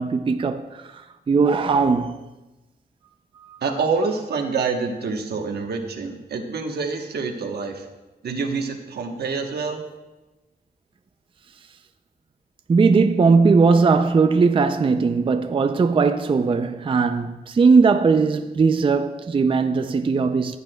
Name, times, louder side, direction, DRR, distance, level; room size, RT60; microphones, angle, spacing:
voice 1, 0.0-2.2 3.5-3.6 12.7-20.6, right 4 dB, 30° right, 0.4 m, -19 dB
voice 2, 3.6-7.9 8.2-9.8, right 4 dB, 80° right, 1.1 m, -26 dB
15.0 x 8.3 x 2.2 m
wide cardioid pair, 115°, 16 cm